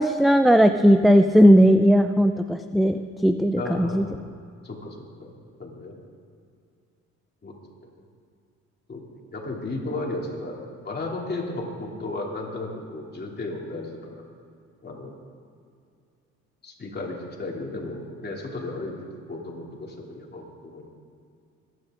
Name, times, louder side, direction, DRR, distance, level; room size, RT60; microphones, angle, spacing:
voice 1, 0.0-4.1, equal, ahead, 8 dB, 0.4 m, -17 dB
voice 2, 3.6-4.1 4.6-5.9 7.4-7.5 7.8-7.9 8.9-9.0 9.3-10.6 10.8-14.2 14.8-15.1 16.6-19.0 19.3-20.9, left 2 dB, 35° left, -1 dB, 3.0 m, -34 dB
21.5 x 11.0 x 3.8 m, 2.4 s
cardioid pair, 90°, 30 cm